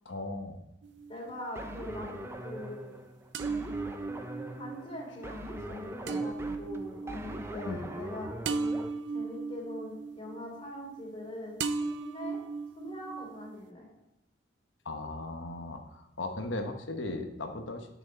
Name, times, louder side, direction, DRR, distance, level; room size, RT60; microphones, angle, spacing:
voice 1, 0.0-0.6 7.6-7.9 14.8-17.9, left 2 dB, 75° left, 5 dB, 1.1 m, -37 dB
sound 1, 0.8-1.7 3.3-11.3 11.6-13.7, right 4 dB, 60° right, 0.5 m, -37 dB
voice 2, 1.1-2.9 4.5-8.3 9.1-12.4 12.8-13.9, left 1 dB, 30° left, -1 dB, 3.0 m, -42 dB
sound 2, 1.6-8.9, right 1 dB, 15° right, 0.6 m, -42 dB
11.5 x 6.3 x 4.2 m, 0.85 s
head